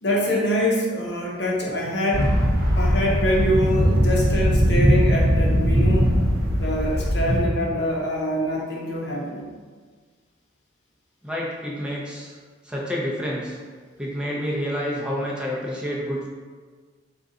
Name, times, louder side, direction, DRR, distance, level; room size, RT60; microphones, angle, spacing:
voice 1, 0.0-2.3 2.8-6.1 6.6-9.5, equal, 60° left, -3 dB, 0.8 m, -25 dB
sound 1, 2.1-7.4, equal, 50° right, 0.6 m, -20 dB
voice 2, 11.2-12.4 12.6-13.6 14.0-16.3, equal, 5° right, -5 dB, 0.6 m, -28 dB
3.8 x 2.4 x 3.8 m, 1.5 s
head